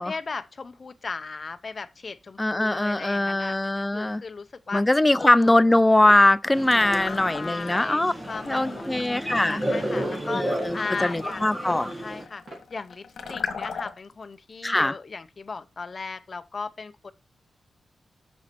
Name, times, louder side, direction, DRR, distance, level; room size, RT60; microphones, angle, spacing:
voice 1, 0.0-3.6 3.9-4.8 5.2-5.6 6.8-8.0 8.3-11.5 12.0-12.4 12.7-17.1, left 4 dB, 35° left, 0.7 m, -36 dB
voice 2, 2.4-4.2 4.7-8.1 8.5-9.6 10.3-10.8 11.0-11.9 14.6-15.0, left 1 dB, 10° left, 0.3 m, -21 dB
sound 1, 6.0-6.2 6.8-7.0 7.7-7.9 8.5-8.7 9.3-9.6 10.1-10.3 10.8-11.1 11.6-11.8 12.5-12.7 13.2-13.4, right 1 dB, 45° right, 3.2 m, -43 dB
sound 2, 6.5-12.2, right 1 dB, 15° right, 1.3 m, -32 dB
sound 3, 6.6-7.8 8.2-14.1, left 6 dB, 80° left, 1.4 m, -38 dB
7.0 x 6.3 x 4.5 m
wide cardioid pair, 170°, 0 cm